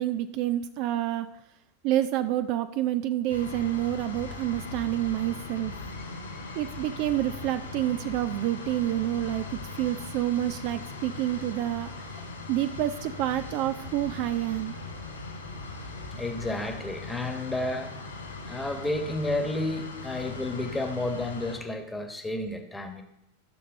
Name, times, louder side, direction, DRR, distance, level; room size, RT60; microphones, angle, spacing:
voice 1, 0.0-1.3 1.8-5.7 6.5-12.2 12.5-14.7, right 13 dB, 45° right, 12 dB, 0.4 m, -28 dB
sound 1, 3.3-21.6, left 3 dB, 80° left, 2.5 m, -40 dB
voice 2, 16.1-18.0 18.4-23.0, left 2 dB, 5° left, 6 dB, 1.3 m, -31 dB
14.0 x 6.6 x 3.8 m, 0.90 s
figure-of-eight pair, 90°, 0 cm